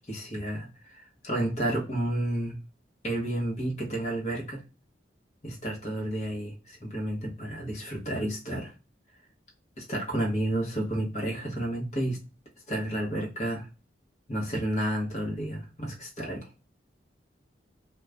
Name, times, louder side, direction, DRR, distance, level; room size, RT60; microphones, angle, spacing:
voice 1, 0.0-2.6 3.0-4.6 5.4-8.7 9.8-12.2 12.7-13.7 14.3-16.5, right 1 dB, 35° left, -1 dB, 1.0 m, -31 dB
2.5 x 2.3 x 3.2 m, 0.31 s
head